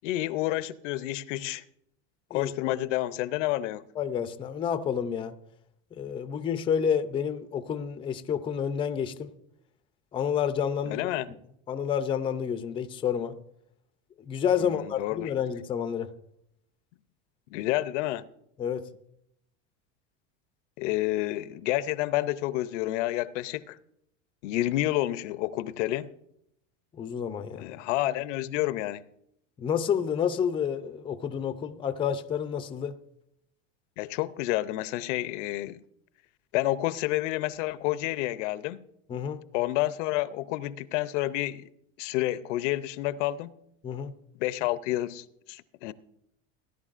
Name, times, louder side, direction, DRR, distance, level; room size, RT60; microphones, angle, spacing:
voice 1, 0.0-1.6 2.3-3.8 10.9-11.3 14.6-15.3 17.5-18.3 20.8-23.8 24.4-26.1 27.6-29.1 34.0-35.8 36.5-38.8 39.5-41.7 42.0-43.5 44.4-45.9, left 16 dB, 80° left, 0.6 m, -29 dB
voice 2, 2.3-2.8 4.0-5.3 5.9-9.3 10.1-11.1 11.7-13.4 14.2-16.1 18.6-18.9 26.9-27.6 29.6-33.0 39.1-39.4 43.8-44.2, left 8 dB, 15° left, 0.4 m, -29 dB
17.5 x 10.5 x 2.5 m
supercardioid pair, 140°, 36 cm